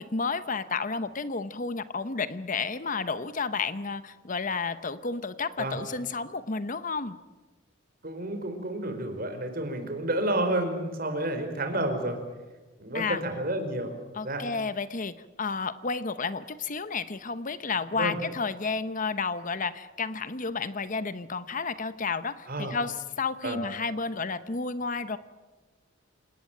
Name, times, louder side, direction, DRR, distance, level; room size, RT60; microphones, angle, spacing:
voice 1, 0.0-7.2 12.9-13.2 14.1-25.2, left 4 dB, 40° left, 13 dB, 0.9 m, -31 dB
voice 2, 8.0-12.2 12.8-13.9 14.2-14.5 18.0-18.2 22.5-22.7 23.4-23.6, right 1 dB, 45° right, 6 dB, 4.6 m, -30 dB
28.0 x 18.5 x 9.1 m, 1.2 s
head